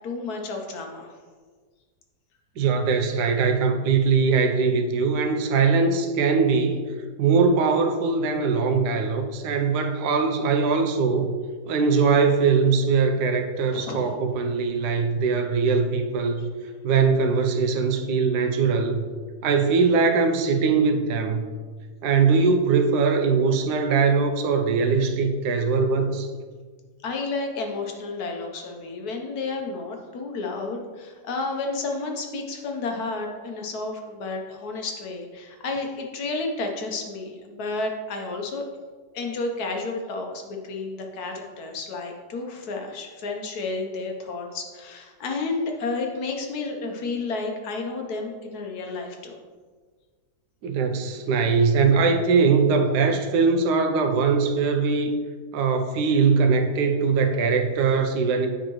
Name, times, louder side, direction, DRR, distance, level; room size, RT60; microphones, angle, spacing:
voice 1, 0.0-1.1 13.7-14.0 27.0-38.7 39.1-49.4, left 3 dB, 70° left, 2 dB, 1.3 m, -31 dB
voice 2, 2.6-6.9 7.2-11.4 11.7-16.5 16.8-19.0 19.4-21.4 22.0-26.3 50.6-55.1 55.5-58.5, right 5 dB, 80° right, 6 dB, 1.2 m, -21 dB
8.6 x 4.6 x 3.0 m, 1.5 s
omnidirectional pair, 1.8 m